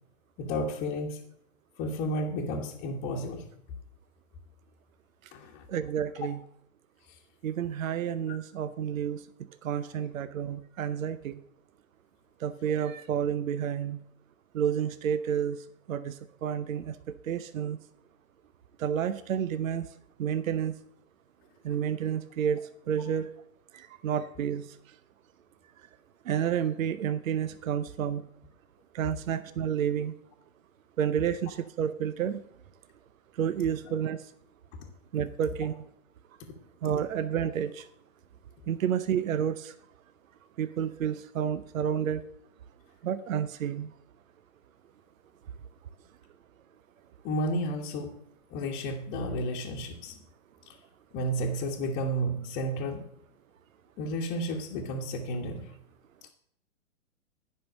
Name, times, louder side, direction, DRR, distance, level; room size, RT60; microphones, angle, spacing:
voice 1, 0.4-1.2 1.8-3.5 5.3-5.7 36.4-36.5 47.2-48.1 48.5-50.2 51.1-53.0 54.0-55.7, equal, 25° left, -3 dB, 1.3 m, -32 dB
voice 2, 5.7-6.4 7.4-11.4 12.4-14.0 14.5-17.8 18.8-19.9 20.2-20.8 21.6-23.3 23.7-25.0 26.2-28.2 28.9-30.1 31.0-32.4 33.3-34.3 35.1-35.8 36.8-37.9 38.7-39.7 40.6-42.2 43.0-43.9, right 8 dB, 70° right, 14 dB, 0.7 m, -30 dB
10.5 x 5.6 x 6.3 m, 0.73 s
hypercardioid pair, 135°, 42 cm